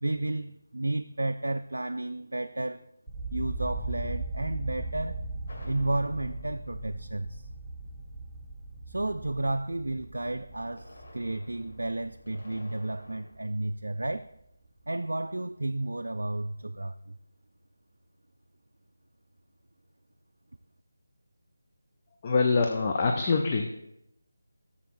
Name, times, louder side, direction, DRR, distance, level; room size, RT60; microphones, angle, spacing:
voice 1, 0.0-2.8 3.3-5.2 5.6-7.5 8.9-14.3 14.9-17.2, right 2 dB, 80° right, 8 dB, 0.3 m, -32 dB
sound 1, 3.1-13.1 13.3-14.1, right 2 dB, ahead, 1.2 m, -38 dB
sound 2, 5.5-7.6 10.5-13.3, left 1 dB, 60° left, 1.7 m, -53 dB
voice 2, 22.2-23.8, left 4 dB, 30° left, 2 dB, 0.5 m, -25 dB
12.5 x 7.1 x 2.6 m, 0.83 s
figure-of-eight pair, 160°, 0 cm